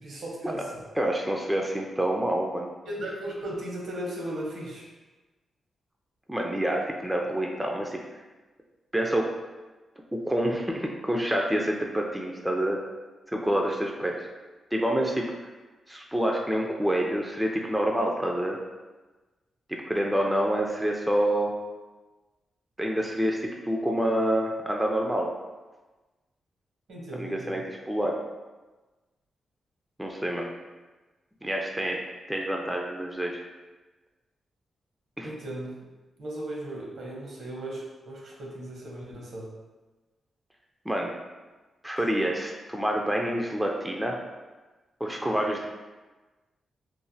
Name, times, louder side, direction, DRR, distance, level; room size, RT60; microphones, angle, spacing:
voice 1, 0.0-0.8 2.9-4.9 26.9-27.6 35.2-35.7 36.2-39.5, right 1 dB, 70° right, -3 dB, 0.7 m, -36 dB
voice 2, 1.0-2.7 6.3-8.0 8.9-9.3 10.1-12.8 13.3-14.3 14.7-15.3 15.9-18.6 19.7-21.5 22.8-25.3 27.1-28.2 30.0-30.5 31.4-32.0 32.3-33.4 35.2-35.3 40.9-41.1 41.8-44.2 45.0-45.7, right 1 dB, 5° right, 0 dB, 0.3 m, -27 dB
3.1 x 2.1 x 2.6 m, 1.2 s
cardioid pair, 80°, 0 cm